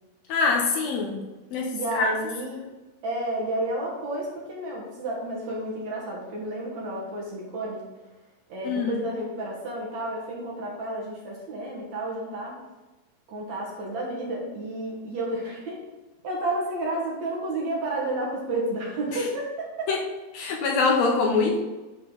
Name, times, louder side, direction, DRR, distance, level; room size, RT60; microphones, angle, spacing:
voice 1, 0.3-1.2 1.5-2.1 8.6-8.9 19.1-19.2 19.9-20.0 20.3-21.6, left 4 dB, 75° left, -1 dB, 1.6 m, -24 dB
voice 2, 1.7-2.6 3.0-7.8 8.5-12.6 13.3-15.8 16.2-19.9, right 1 dB, 60° right, -2 dB, 2.4 m, -31 dB
11.0 x 3.9 x 3.9 m, 1.1 s
omnidirectional pair, 4.1 m